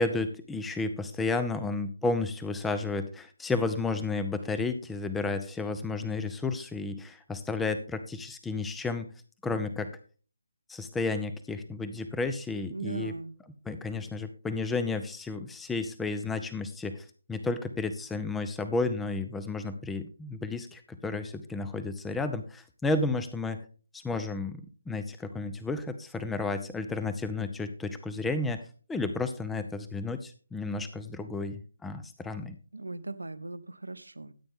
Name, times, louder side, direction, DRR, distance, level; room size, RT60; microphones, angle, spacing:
voice 1, 0.0-9.1 9.4-9.9 10.7-13.1 13.7-23.6 23.9-28.6 28.9-32.6, left 3 dB, 5° left, 11 dB, 0.7 m, -32 dB
voice 2, 12.7-13.4 32.7-34.3, right 2 dB, 80° right, 14 dB, 1.0 m, -38 dB
14.0 x 8.8 x 3.6 m, 0.38 s
figure-of-eight pair, 150°, 0 cm